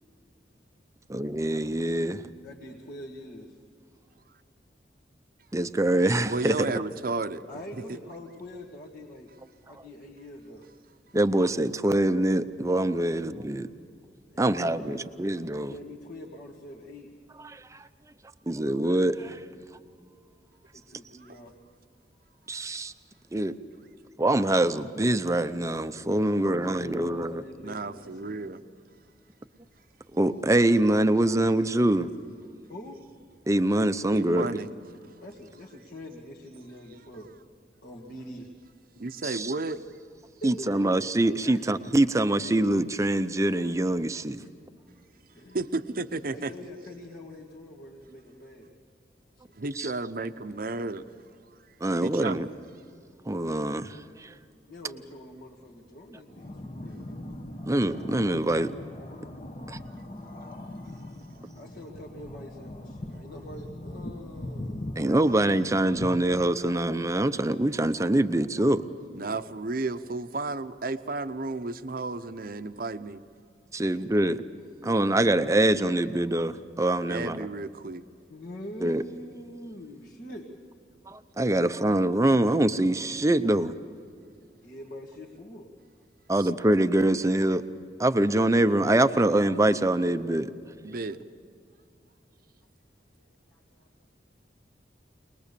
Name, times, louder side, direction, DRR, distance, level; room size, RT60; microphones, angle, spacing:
voice 1, 1.1-2.2 5.5-6.7 9.8-9.9 11.1-13.7 14.4-15.7 17.4-17.8 18.5-19.4 22.5-22.9 23.3-23.5 24.2-27.4 30.1-32.1 33.5-34.5 39.2-39.5 40.4-44.4 49.8-49.9 51.8-52.5 53.3-54.3 57.7-58.7 59.7-59.8 65.0-68.8 73.7-74.4 74.8-77.5 78.8-79.0 81.1-83.7 86.3-87.6 88.0-90.5, right 1 dB, 15° right, 11 dB, 0.6 m, -24 dB
voice 2, 2.4-3.6 6.7-6.8 7.5-9.3 9.7-10.7 14.3-15.1 15.6-17.1 20.7-21.5 26.2-28.4 32.7-33.0 35.2-37.3 37.8-38.5 40.4-41.0 41.4-41.7 44.4-44.5 45.3-45.6 46.3-48.7 49.4-49.5 54.7-57.0 61.5-65.0 73.8-74.2 74.8-75.3 78.3-80.5 84.6-85.7 93.2-94.1, left 1 dB, 60° left, -3 dB, 1.9 m, -44 dB
voice 3, 6.3-7.4 7.7-8.0 21.2-21.4 27.6-28.6 34.1-34.7 39.0-39.8 45.5-46.5 49.5-51.0 52.0-52.5 56.5-56.6 69.1-73.2 77.1-78.0 86.4-86.5 90.8-91.2, right 3 dB, 55° right, 11 dB, 0.8 m, -33 dB
sound 1, 56.3-67.2, left 1 dB, 40° left, 1.2 m, -41 dB
23.0 x 21.0 x 6.8 m, 2.4 s
head